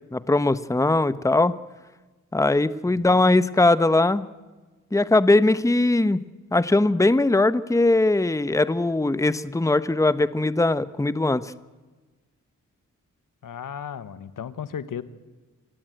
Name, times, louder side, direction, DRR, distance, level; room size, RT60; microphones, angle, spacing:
voice 1, 0.1-1.5 2.3-4.3 4.9-6.2 6.5-11.5, left 2 dB, 10° left, 14 dB, 0.9 m, -20 dB
voice 2, 2.9-3.2 13.4-15.0, left 8 dB, 75° left, 13 dB, 1.3 m, -35 dB
26.0 x 16.0 x 9.1 m, 1.2 s
cardioid pair, 65°, 32 cm